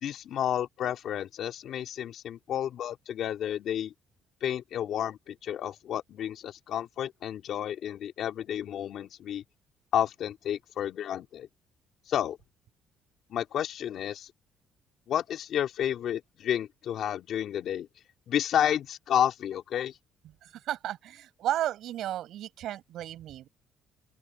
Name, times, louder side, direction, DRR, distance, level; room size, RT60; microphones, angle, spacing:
voice 1, 0.0-3.9 4.4-9.4 9.9-11.5 12.1-12.4 13.3-14.3 15.1-17.9 18.3-19.9, left 10 dB, 60° left, 2.7 m, -31 dB
voice 2, 20.4-23.5, right 12 dB, 70° right, 6.3 m, -33 dB
open air
cardioid pair, 125°, 0 cm